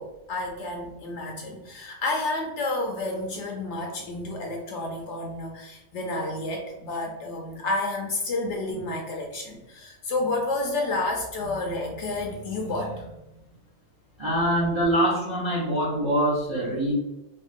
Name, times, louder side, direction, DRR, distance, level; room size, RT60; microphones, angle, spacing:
voice 1, 0.0-13.2, left 2 dB, 65° left, 1 dB, 0.8 m, -30 dB
voice 2, 14.2-16.9, equal, 30° right, -6 dB, 0.5 m, -24 dB
3.4 x 2.2 x 2.4 m, 0.93 s
omnidirectional pair, 1.4 m